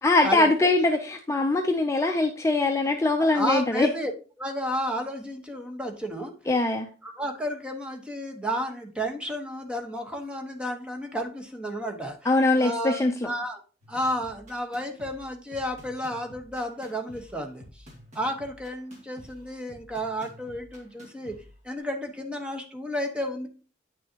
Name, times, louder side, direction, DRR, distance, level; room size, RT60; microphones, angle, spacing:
voice 1, 0.0-3.9 6.5-6.9 12.2-13.3, left 2 dB, 15° left, 3 dB, 0.5 m, -22 dB
voice 2, 3.2-4.1 4.4-6.3 7.0-12.2 12.5-13.6 13.9-17.6 18.1-21.3 21.6-23.5, equal, 5° right, 3 dB, 1.1 m, -32 dB
sound 1, 13.8-21.8, equal, 40° right, 2.3 m, -50 dB
9.2 x 6.3 x 2.8 m, 0.36 s
head